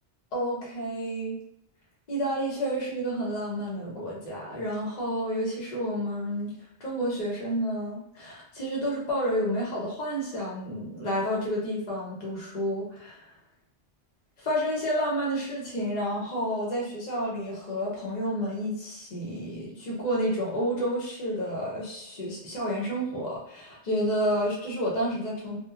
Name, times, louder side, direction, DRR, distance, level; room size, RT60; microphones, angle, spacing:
voice 1, 0.3-1.4 2.1-6.5 6.8-13.2 14.4-25.6, equal, 40° left, -4 dB, 0.8 m, -30 dB
2.8 x 2.1 x 2.4 m, 0.74 s
omnidirectional pair, 1.2 m